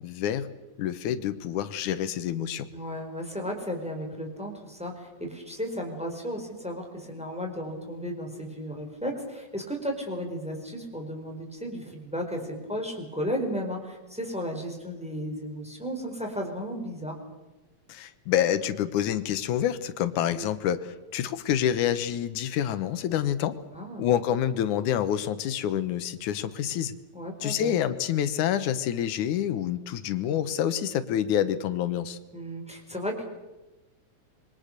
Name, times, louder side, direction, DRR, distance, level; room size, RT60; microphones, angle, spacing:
voice 1, 0.0-0.5 0.8-2.7 17.9-23.6 24.0-26.9 27.4-32.2, left 10 dB, 90° left, 12 dB, 2.6 m, -27 dB
voice 2, 2.7-17.1 20.3-20.5 23.7-24.1 27.1-27.7 32.3-33.3, equal, ahead, 2 dB, 4.4 m, -34 dB
27.0 x 23.0 x 6.7 m, 1.1 s
omnidirectional pair, 3.4 m